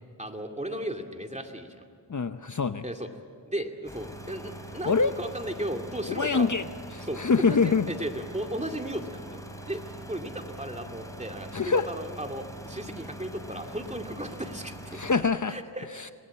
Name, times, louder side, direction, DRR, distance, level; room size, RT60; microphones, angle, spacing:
voice 1, 0.2-1.9 2.8-3.1 3.4-6.5 7.0-9.4 9.7-15.0 15.5-15.9, right 1 dB, 15° right, 3 dB, 2.4 m, -35 dB
voice 2, 2.1-2.9 4.9-5.1 6.1-6.7 6.9-7.9 11.5-11.9 14.9-15.6 15.9-16.1, left 5 dB, 45° left, 10 dB, 0.8 m, -25 dB
sound 1, 3.9-15.2, right 1 dB, 10° left, 4.3 m, -43 dB
26.0 x 19.5 x 8.5 m, 2.1 s
wide cardioid pair, 45°, 42 cm